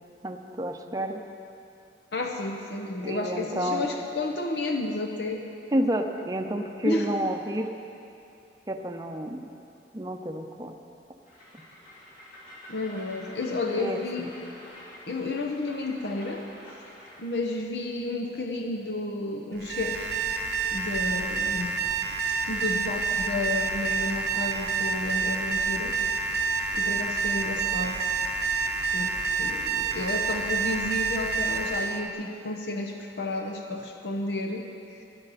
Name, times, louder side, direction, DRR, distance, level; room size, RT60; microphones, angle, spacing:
voice 1, 0.2-1.2 3.0-3.9 5.7-7.7 8.7-9.5 9.9-10.7 13.8-14.3, right 1 dB, 20° right, 3 dB, 0.6 m, -30 dB
voice 2, 2.1-5.5 6.8-7.1 12.7-14.3 15.1-16.5 17.2-20.1 20.7-21.8 22.5-26.0 26.7-28.0 28.9-34.7, left 2 dB, 65° left, 2 dB, 0.9 m, -31 dB
Train, 11.2-17.3, left 1 dB, 45° left, 2.7 m, -48 dB
Alarm, 19.6-32.0, right 4 dB, 70° right, 0.8 m, -28 dB
18.5 x 10.5 x 4.2 m, 2.7 s
head